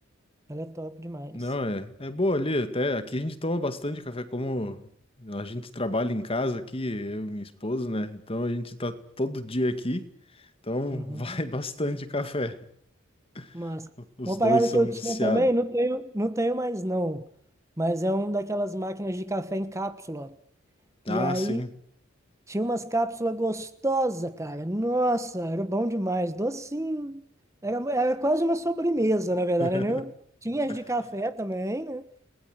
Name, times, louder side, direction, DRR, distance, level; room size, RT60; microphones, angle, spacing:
voice 1, 0.5-1.4 10.9-11.4 13.5-13.9 14.2-17.2 17.8-20.3 21.1-21.6 22.5-27.2 27.6-30.1 30.4-32.0, right 1 dB, 15° right, 1.2 m, -27 dB
voice 2, 1.3-4.9 5.2-10.1 10.6-12.6 13.4-13.5 14.2-15.5 21.1-21.7 29.6-30.0, left 1 dB, 30° left, 2.1 m, -30 dB
30.0 x 20.5 x 8.0 m
head